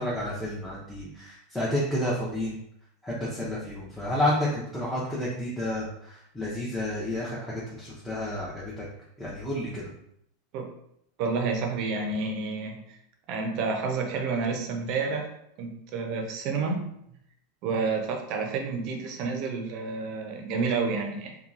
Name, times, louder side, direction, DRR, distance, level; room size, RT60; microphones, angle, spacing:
voice 1, 0.0-2.6 3.0-8.8 9.2-9.8, left 1 dB, 5° left, -7 dB, 0.7 m, -30 dB
voice 2, 11.2-13.0 13.3-15.3 15.6-16.9 17.6-21.4, right 4 dB, 50° right, 3 dB, 0.6 m, -29 dB
2.9 x 2.2 x 2.5 m, 0.74 s
hypercardioid pair, 90°, 0 cm